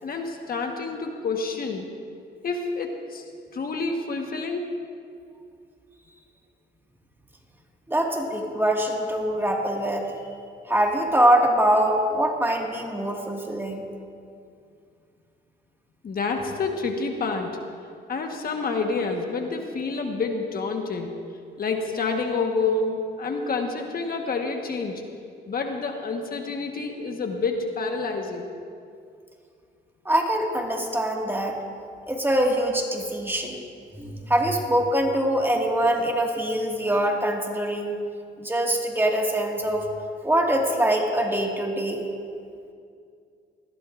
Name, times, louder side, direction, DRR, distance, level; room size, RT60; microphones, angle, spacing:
voice 1, 0.0-1.9 2.4-3.2 3.5-4.7 16.0-17.5 18.1-21.1 21.6-25.0 25.5-28.5, left 4 dB, 50° left, 3 dB, 1.3 m, -28 dB
voice 2, 7.9-10.2 10.7-13.8 30.1-31.6 32.1-33.6 34.0-38.0 38.4-39.9 40.2-42.0, right 1 dB, 10° right, 0 dB, 1.9 m, -23 dB
20.0 x 15.5 x 2.5 m, 2.3 s
cardioid pair, 90°, 20 cm